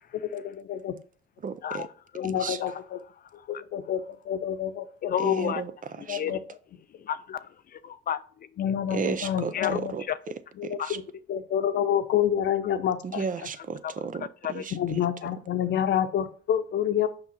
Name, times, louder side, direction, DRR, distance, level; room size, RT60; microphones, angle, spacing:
voice 1, 0.2-0.9 2.2-3.0 3.5-5.1 6.1-6.4 8.6-9.9 10.6-11.0 11.3-13.2 14.7-17.1, left 9 dB, 65° left, 0.8 m, -28 dB
voice 2, 1.4-1.9 2.2-2.6 5.2-6.2 8.9-10.0 10.6-11.0 13.0-14.8, right 6 dB, 45° right, 0.7 m, -34 dB
voice 3, 2.1-2.8 3.4-3.5 5.0-5.6 6.1-6.4 7.0-8.5 9.5-9.8 10.1-10.2 10.8-10.9 13.8-13.9 14.4-14.6, left 9 dB, 50° left, 0.4 m, -31 dB
5.9 x 5.4 x 4.2 m
cardioid pair, 90°, 20 cm